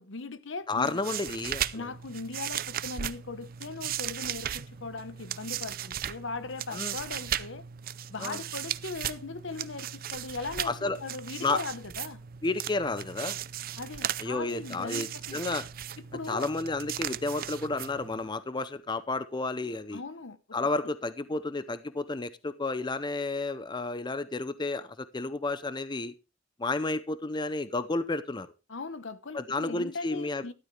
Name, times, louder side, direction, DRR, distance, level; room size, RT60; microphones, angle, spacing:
voice 1, 0.0-1.0 1.7-7.6 8.1-10.7 11.0-12.2 13.8-15.4 16.1-16.5 19.9-20.4 28.7-30.5, left 3 dB, 70° left, 1.0 m, -39 dB
voice 2, 0.7-1.9 6.7-7.0 8.2-8.4 10.6-11.0 11.4-11.6 12.4-13.4 14.2-15.6 16.3-20.0 20.5-26.1 26.6-28.5 29.3-30.5, left 3 dB, 25° left, 0.6 m, -31 dB
sound 1, 0.7-18.3, right 10 dB, 50° right, 0.5 m, -37 dB
13.5 x 12.0 x 3.3 m
head